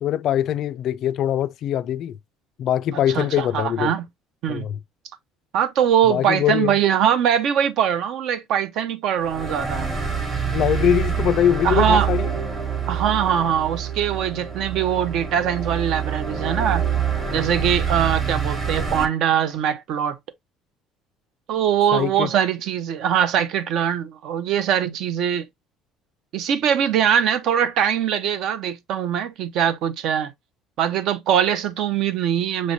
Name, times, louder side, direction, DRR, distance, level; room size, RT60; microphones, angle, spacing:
voice 1, 0.0-2.2 2.6-3.9 4.5-4.8 6.1-6.8 10.5-12.3 21.9-22.3, left 11 dB, 45° left, 0.3 m, -22 dB
voice 2, 3.1-4.1 4.4-4.7 5.5-9.9 11.6-12.1 12.9-16.8 17.3-20.2 21.5-25.5 26.3-30.3 30.8-32.7, right 9 dB, 55° right, 0.7 m, -22 dB
sound 1, 9.2-19.0, right 7 dB, 25° right, 1.2 m, -26 dB
6.3 x 3.1 x 2.6 m
cardioid pair, 165°, 0 cm